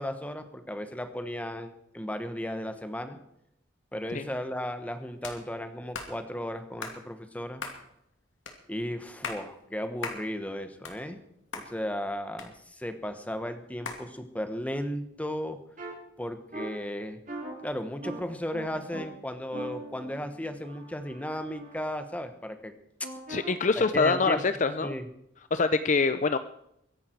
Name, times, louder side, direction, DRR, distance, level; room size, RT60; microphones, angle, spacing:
voice 1, 0.0-3.2 3.9-7.6 8.7-11.2 11.5-15.6 16.2-17.2 17.6-22.7 23.9-24.4 24.8-25.1, equal, 5° left, 8 dB, 1.3 m, -35 dB
sound 1, 5.2-5.4 5.9-6.1 6.8-7.0 7.6-7.8 8.5-8.6 9.1-9.4 10.0-10.2 10.6-11.3 11.5-11.7 12.4-12.9 13.8-14.0, left 4 dB, 80° left, 2.7 m, -37 dB
sound 2, 15.8-15.9 16.5-16.7 17.3-17.5 18.0-18.2 18.5-19.0 19.5-21.8 23.0-23.5, right 2 dB, 40° right, 3.6 m, -41 dB
voice 2, 23.3-24.9 25.5-26.4, left 4 dB, 40° left, 11 dB, 0.5 m, -25 dB
23.0 x 11.0 x 4.6 m, 0.78 s
head